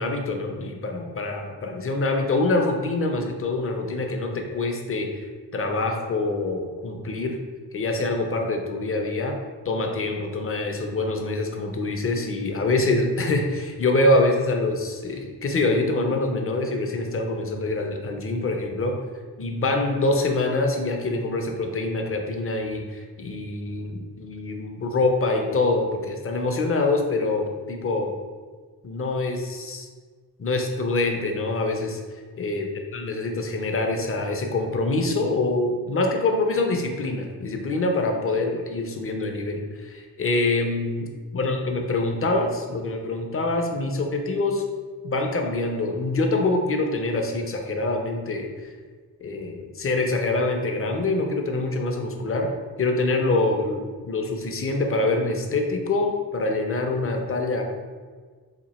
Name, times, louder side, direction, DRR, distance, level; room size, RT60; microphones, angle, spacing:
voice 1, 0.0-5.1 5.5-7.4 7.7-9.4 9.7-19.0 19.4-28.1 28.8-29.9 30.4-32.0 32.4-41.1 41.3-44.6 45.0-48.5 49.2-52.5 52.8-57.6, left 2 dB, 35° left, 3 dB, 0.4 m, -25 dB
2.9 x 2.7 x 4.1 m, 1.5 s
wide cardioid pair, 130°, 40 cm